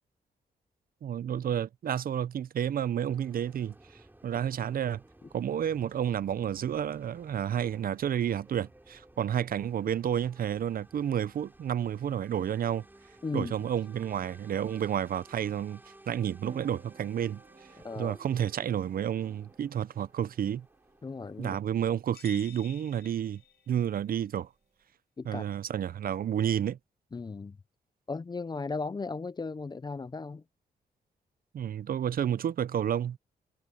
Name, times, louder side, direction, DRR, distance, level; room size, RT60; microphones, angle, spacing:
voice 1, 1.0-3.7 4.2-5.0 5.3-12.8 13.3-15.8 16.1-17.4 18.0-20.7 21.4-23.4 23.7-24.5 25.3-26.8 31.5-33.2, right 9 dB, 60° right, 0.6 m, -30 dB
sound 1, 3.0-21.5, right 1 dB, 10° right, 4.2 m, -57 dB
voice 2, 13.2-13.5 17.8-18.2 21.0-21.6 25.2-25.4 27.1-27.6 28.1-30.4, left 4 dB, 25° left, 0.5 m, -36 dB
sound 2, 16.4-24.8, right 5 dB, 45° right, 3.8 m, -56 dB
sound 3, 22.1-24.0, left 10 dB, 65° left, 1.9 m, -52 dB
cardioid pair, 85°, 17 cm